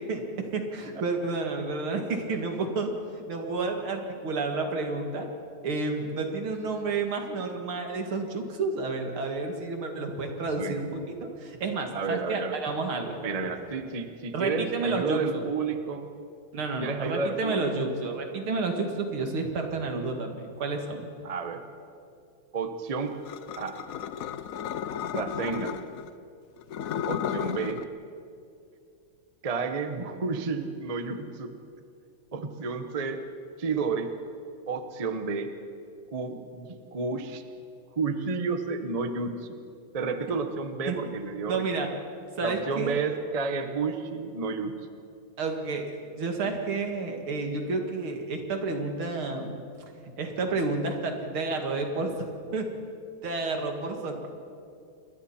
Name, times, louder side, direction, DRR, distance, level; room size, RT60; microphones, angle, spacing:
voice 1, 0.0-2.9 3.3-5.3 5.6-13.3 14.3-15.5 16.5-21.1 40.9-41.0 41.5-41.9 42.4-42.9 45.4-49.6 50.2-52.3 52.5-52.7 53.2-54.3, right 3 dB, 80° right, 3 dB, 2.9 m, -30 dB
voice 2, 11.9-12.6 13.2-16.1 16.8-17.7 21.2-21.6 22.5-23.2 23.6-23.8 25.0-25.8 27.1-27.8 29.4-31.6 32.3-33.2 33.6-34.1 34.7-35.5 36.1-37.4 37.9-39.6 39.9-41.7 42.4-44.9, right 4 dB, 30° right, 7 dB, 0.7 m, -31 dB
sound 1, 23.3-26.1 26.6-27.9, left 9 dB, 75° left, 0.8 m, -33 dB
28.5 x 22.0 x 4.4 m, 2.5 s
omnidirectional pair, 2.3 m